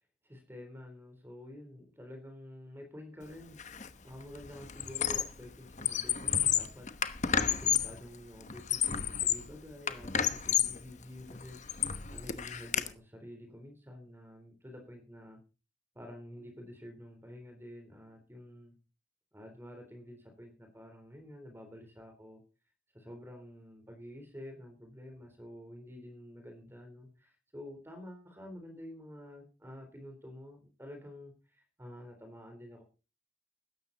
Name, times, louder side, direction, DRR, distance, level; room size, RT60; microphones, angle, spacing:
voice 1, 0.2-3.6 4.0-6.9 7.4-11.6 12.1-15.4 15.9-18.8 19.3-22.4 22.9-32.8, left 1 dB, 15° right, 4 dB, 3.8 m, -49 dB
Squeak, 3.6-3.9 4.2-5.4 5.7-8.0 8.5-9.5 9.9-10.8 11.3-12.9, left 8 dB, 40° left, 1.1 m, -31 dB
17.0 x 13.0 x 4.1 m, 0.33 s
head